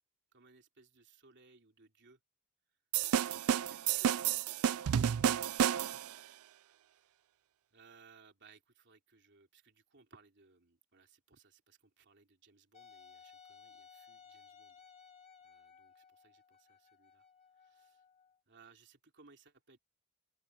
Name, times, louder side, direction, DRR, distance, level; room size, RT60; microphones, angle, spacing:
voice 1, 0.3-2.2 3.3-4.2 6.9-7.2 7.7-14.8 15.4-17.3 17.6-18.0 18.5-19.8, right 4 dB, 55° right, 3.2 m, -63 dB
sound 1, 2.9-6.2, right 9 dB, 75° right, 0.4 m, -31 dB
voice 2, 3.5-4.0 4.7-5.3 5.6-6.1, left 2 dB, 75° left, 4.9 m, -66 dB
Wind instrument woodwind instrument, 12.7-18.4, left 6 dB, 30° left, 2.7 m, -59 dB
head